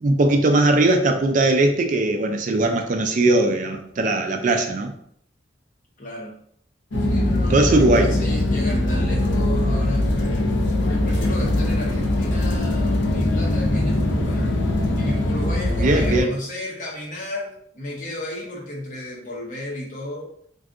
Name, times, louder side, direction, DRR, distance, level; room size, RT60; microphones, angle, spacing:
voice 1, 0.0-4.9 7.2-8.1 15.8-16.3, right 2 dB, 45° right, 5 dB, 0.3 m, -19 dB
voice 2, 6.0-6.4 7.0-10.5 10.8-14.4 15.0-20.3, left 1 dB, 45° left, -2 dB, 0.8 m, -33 dB
sound 1, 6.9-16.2, left 1 dB, 80° left, 0.6 m, -21 dB
2.6 x 2.4 x 3.5 m, 0.68 s
head